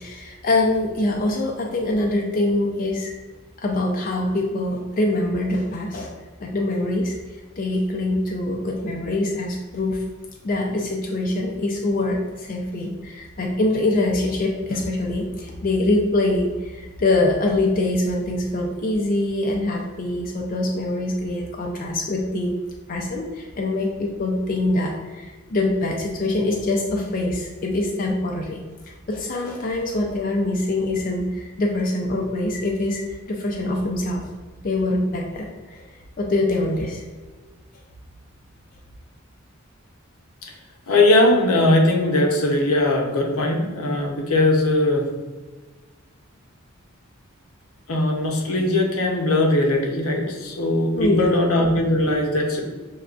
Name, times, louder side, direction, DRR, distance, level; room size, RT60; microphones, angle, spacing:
voice 1, 0.0-3.1 3.6-6.1 6.4-7.1 7.6-10.0 10.4-22.5 22.9-28.6 29.1-33.0 33.3-34.3 34.6-35.9 36.2-37.0 50.9-51.3, left 2 dB, 40° left, 0 dB, 0.4 m, -24 dB
voice 2, 40.9-45.2 47.9-52.6, left 1 dB, 85° left, 0 dB, 0.7 m, -20 dB
6.3 x 2.2 x 2.4 m, 1.3 s
head